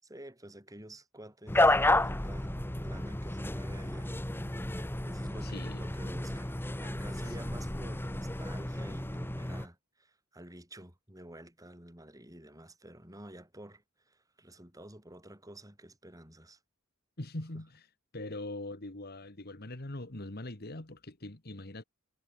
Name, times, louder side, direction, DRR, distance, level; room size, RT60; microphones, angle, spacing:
voice 1, 0.0-4.2 5.0-6.5 6.8-16.6 17.5-17.6, right 1 dB, 15° right, 7.1 m, -50 dB
sound 1, 1.5-9.7, left 1 dB, 10° left, 1.2 m, -31 dB
voice 2, 5.4-5.8 7.3-7.4 17.2-17.9 18.1-21.8, left 1 dB, 50° left, 2.1 m, -42 dB
head